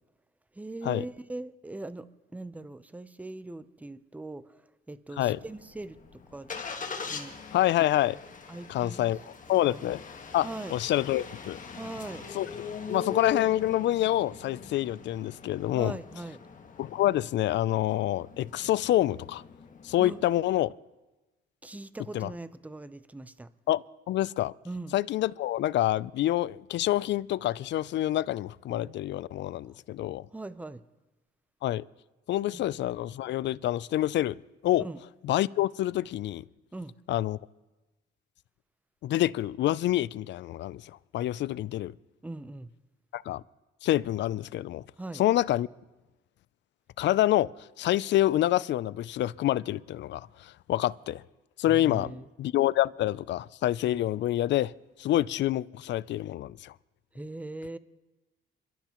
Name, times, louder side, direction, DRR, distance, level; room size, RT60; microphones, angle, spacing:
voice 1, 0.5-2.1 2.3-6.5 7.1-7.4 8.5-9.1 9.7-9.8 10.4-10.8 11.7-12.2 15.7-16.4 20.0-20.2 21.6-23.5 24.6-24.9 29.7-29.8 30.3-30.8 32.5-32.7 34.8-35.0 36.7-36.9 42.2-42.7 45.0-45.2 51.7-52.3 57.1-57.8, right 2 dB, 5° right, 0.6 m, -40 dB
Engine starting, 5.3-20.6, left 5 dB, 40° left, 1.5 m, -42 dB
voice 2, 7.5-8.2 8.7-10.0 10.3-11.6 12.3-12.5 12.9-15.9 16.8-19.4 19.8-20.8 22.1-22.3 23.7-24.5 24.9-30.3 31.6-31.8 32.3-34.4 34.6-34.9 35.2-36.4 37.1-37.4 39.0-41.9 43.1-43.4 43.8-44.8 45.1-45.7 47.0-47.5 47.8-51.2 51.6-54.7 55.0-56.7, left 14 dB, 65° left, 0.4 m, -27 dB
27.5 x 12.0 x 3.0 m
cardioid pair, 90°, 20 cm